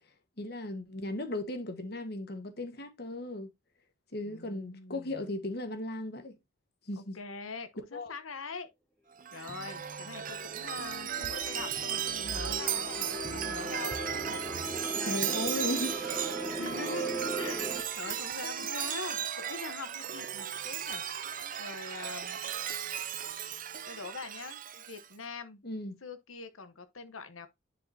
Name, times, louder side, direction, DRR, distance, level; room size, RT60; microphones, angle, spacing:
voice 1, 0.4-3.5 4.1-6.4 6.9-7.2 7.9-8.1 15.0-16.3 18.1-18.2 25.6-26.0, left 1 dB, 50° left, 1.3 m, -36 dB
voice 2, 4.2-5.2 7.0-8.7 9.3-14.4 14.7-15.4 16.6-21.0 21.6-22.4 23.9-24.6 24.9-25.6 26.0-27.5, left 4 dB, 85° left, 1.1 m, -43 dB
Chime, 9.2-25.1, right 9 dB, 40° right, 0.6 m, -36 dB
sound 1, 9.9-17.8, right 1 dB, 5° left, 1.2 m, -39 dB
10.5 x 4.9 x 2.7 m
head